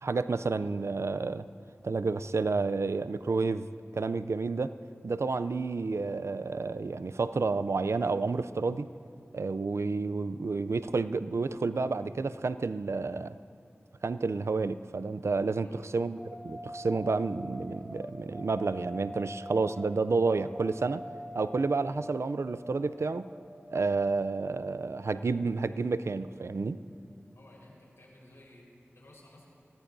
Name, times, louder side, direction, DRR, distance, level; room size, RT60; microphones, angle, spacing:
voice 1, 0.0-1.4 1.8-3.7 3.9-4.7 5.0-8.9 9.3-13.4 14.0-21.0 21.3-23.3 23.7-26.8, right 4 dB, 75° right, 13 dB, 0.4 m, -30 dB
voice 2, 15.6-16.0 27.3-29.5, left 1 dB, 85° left, -4 dB, 4.3 m, -56 dB
sound 1, 16.2-26.9, equal, 5° left, 4.8 m, -45 dB
23.5 x 18.5 x 2.6 m, 2.5 s
wide cardioid pair, 45°, 5 cm